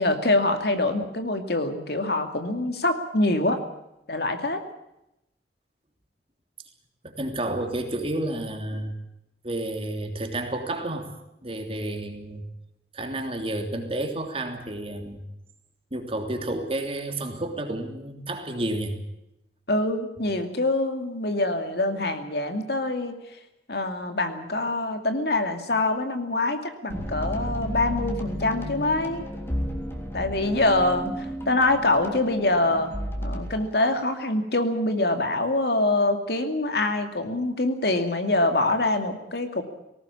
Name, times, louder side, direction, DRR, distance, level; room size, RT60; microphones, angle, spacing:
voice 1, 0.0-3.6 4.1-4.6 19.7-23.2 23.7-29.3 30.1-32.9 33.2-39.6, left 2 dB, 60° left, 7 dB, 2.5 m, -25 dB
voice 2, 7.0-9.0 9.4-11.1 11.4-12.5 12.9-15.2 15.9-19.0, right 1 dB, 30° right, 4 dB, 3.1 m, -30 dB
sound 1, 26.9-33.8, equal, 15° left, 3.3 m, -33 dB
19.5 x 18.5 x 8.6 m, 0.86 s
head